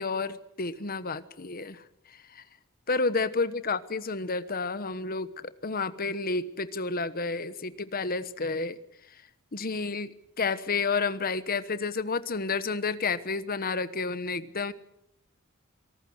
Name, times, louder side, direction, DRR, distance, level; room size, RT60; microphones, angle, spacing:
voice 1, 0.0-2.4 2.9-8.8 9.5-10.1 10.4-14.7, left 4 dB, 45° left, 14 dB, 1.2 m, -30 dB
26.0 x 18.5 x 7.9 m, 0.77 s
head